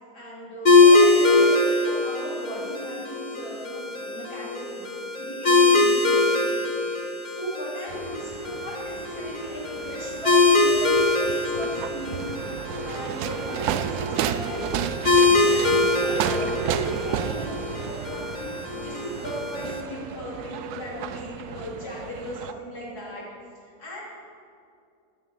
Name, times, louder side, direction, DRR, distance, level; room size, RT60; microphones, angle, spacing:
voice 1, 0.1-12.2 12.8-18.5 18.8-23.3 23.6-24.0, equal, 85° left, -7 dB, 4.4 m, -36 dB
sound 1, 0.7-19.8, left 3 dB, 30° left, 1.3 m, -23 dB
sound 2, 7.9-22.5, right 10 dB, 85° right, 1.1 m, -33 dB
15.0 x 7.3 x 7.3 m, 2.4 s
omnidirectional pair, 1.6 m